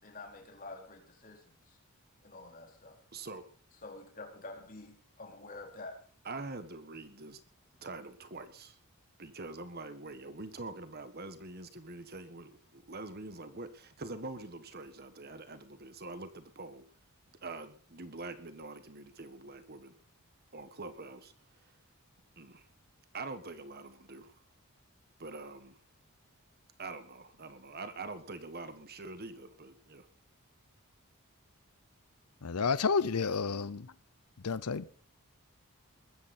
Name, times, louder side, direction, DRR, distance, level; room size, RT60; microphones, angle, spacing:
voice 1, 0.0-1.8 2.2-3.0 3.8-6.0, left 2 dB, 40° left, 4.2 m, -48 dB
voice 2, 3.1-3.4 6.2-7.4 7.8-8.8 9.2-16.8 17.4-19.9 20.5-21.8 22.4-22.7 23.1-24.4 25.2-25.8 26.8-30.1, right 3 dB, 45° right, 1.5 m, -45 dB
voice 3, 32.4-33.9 34.4-34.9, left 5 dB, 85° left, 0.7 m, -30 dB
21.5 x 14.5 x 4.4 m
head